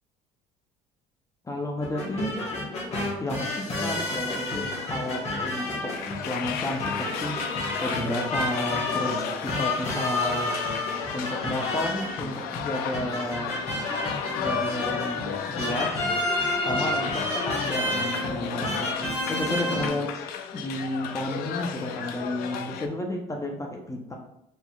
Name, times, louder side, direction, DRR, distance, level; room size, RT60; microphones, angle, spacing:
voice 1, 1.4-2.4 3.2-10.5 11.1-13.5 14.3-16.1 16.6-24.2, left 1 dB, 20° left, 2 dB, 0.7 m, -32 dB
sound 1, 1.8-19.9, left 1 dB, 40° left, 1.4 m, -31 dB
sound 2, 5.8-22.9, left 7 dB, 70° left, 0.5 m, -33 dB
6.1 x 2.8 x 2.3 m, 0.78 s
supercardioid pair, 80°, 16 cm